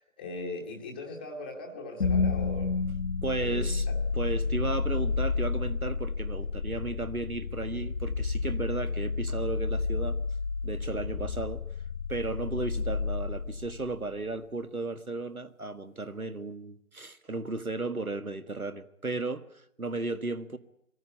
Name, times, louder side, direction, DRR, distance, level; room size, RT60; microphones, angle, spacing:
voice 1, 0.0-2.7 3.3-4.0, left 2 dB, 5° left, 2 dB, 0.9 m, -40 dB
sound 1, 2.0-14.1, left 4 dB, 55° left, 0.8 m, -31 dB
voice 2, 3.2-3.8 4.1-10.2 10.6-11.6 12.1-20.6, right 3 dB, 90° right, 11 dB, 1.7 m, -34 dB
22.5 x 15.0 x 9.7 m, 0.77 s
figure-of-eight pair, 150°, 42 cm